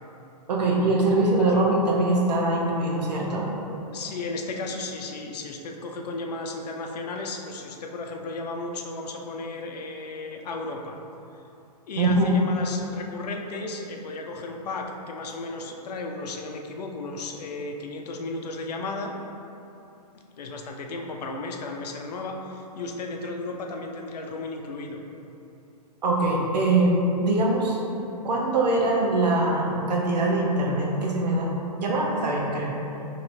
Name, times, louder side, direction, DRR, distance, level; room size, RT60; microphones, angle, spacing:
voice 1, 0.5-3.5 12.0-12.3 26.0-27.8 28.2-31.5 31.8-32.8, right 2 dB, 80° right, -2 dB, 0.9 m, -23 dB
voice 2, 1.1-1.6 3.9-11.0 11.9-19.1 20.4-25.0 28.0-28.1, left 3 dB, 75° left, 2 dB, 0.5 m, -34 dB
4.3 x 3.0 x 2.6 m, 2.8 s
hypercardioid pair, 140°, 21 cm